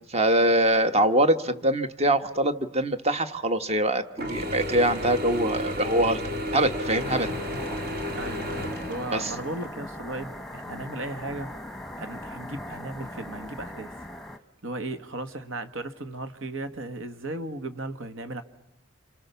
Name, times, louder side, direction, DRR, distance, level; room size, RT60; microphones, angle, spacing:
voice 1, 0.0-6.2 6.5-7.3 9.1-9.3, right 1 dB, 30° right, 10 dB, 1.2 m, -23 dB
Mechanisms / Drill, 4.2-9.7, equal, 50° right, 2.2 m, -32 dB
sound 1, 7.0-14.4, left 1 dB, ahead, 1.2 m, -40 dB
voice 2, 8.1-11.5 12.0-13.9 14.6-18.4, right 2 dB, 70° right, 10 dB, 1.8 m, -36 dB
29.5 x 27.0 x 7.0 m, 0.88 s
head